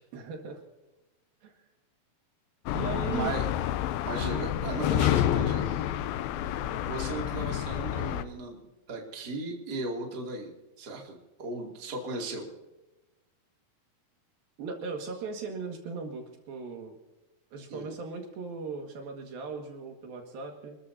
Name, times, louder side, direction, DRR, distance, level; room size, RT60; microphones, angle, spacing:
voice 1, 0.1-0.6 1.4-1.5 2.7-3.3 4.2-4.3 5.6-5.8 6.5-6.6 14.6-17.0 17.5-20.8, right 4 dB, 65° right, 3 dB, 3.5 m, -38 dB
sound 1, 2.7-8.2, left 12 dB, 80° left, 2.3 m, -29 dB
voice 2, 3.1-3.5 4.0-5.6 6.7-8.6 8.9-10.5 10.8-12.5 17.7-17.9, right 2 dB, 30° right, 0 dB, 2.6 m, -36 dB
27.0 x 14.0 x 2.8 m, 1.1 s
omnidirectional pair, 4.6 m